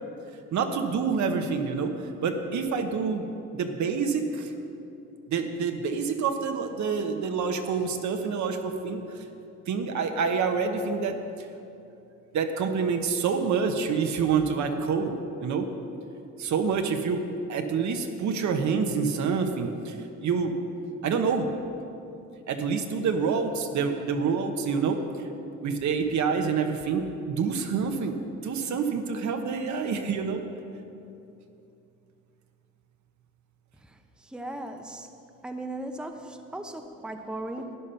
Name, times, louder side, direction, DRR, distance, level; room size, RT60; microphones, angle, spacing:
voice 1, 0.5-1.9 2.2-4.5 5.3-9.2 9.7-11.2 12.3-15.1 15.4-15.7 16.4-20.0 20.2-20.5 21.0-21.5 22.5-25.0 25.6-30.4, right 5 dB, 70° right, 5 dB, 1.1 m, -27 dB
voice 2, 33.9-35.1 35.4-37.8, right 1 dB, 5° right, 5 dB, 0.8 m, -37 dB
12.0 x 9.7 x 5.7 m, 2.7 s
cardioid pair, 90°, 30 cm